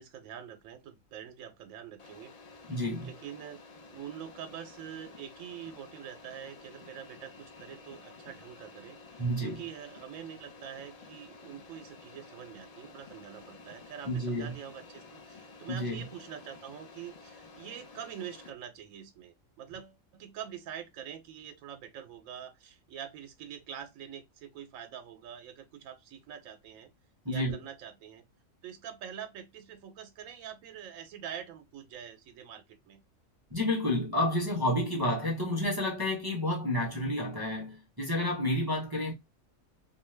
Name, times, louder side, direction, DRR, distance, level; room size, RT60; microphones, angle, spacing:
voice 1, 0.0-2.3 2.7-3.6 3.9-26.9 27.3-28.2 28.6-33.0 36.8-36.9, right 9 dB, 75° right, 1.0 m, -45 dB
sound 1, 2.0-18.5, left 4 dB, 70° left, 0.3 m, -52 dB
voice 2, 2.7-3.1 9.2-9.6 14.0-14.6 15.7-16.0 27.2-27.6 33.5-39.1, left 1 dB, 30° right, 0.4 m, -30 dB
2.6 x 2.2 x 3.1 m
omnidirectional pair, 1.4 m